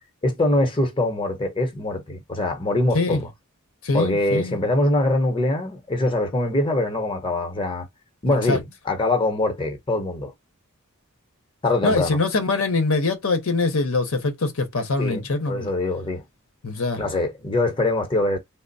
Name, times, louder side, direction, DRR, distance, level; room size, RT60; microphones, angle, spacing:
voice 1, 0.2-3.3 3.9-7.9 8.2-10.3 11.6-12.2 15.0-15.2 15.5-16.2 17.0-18.4, left 2 dB, 25° left, 0.8 m, -23 dB
voice 2, 3.8-4.6 8.5-8.6 11.8-15.7 16.6-17.0, left 3 dB, 70° left, 0.9 m, -23 dB
3.3 x 2.0 x 3.9 m
head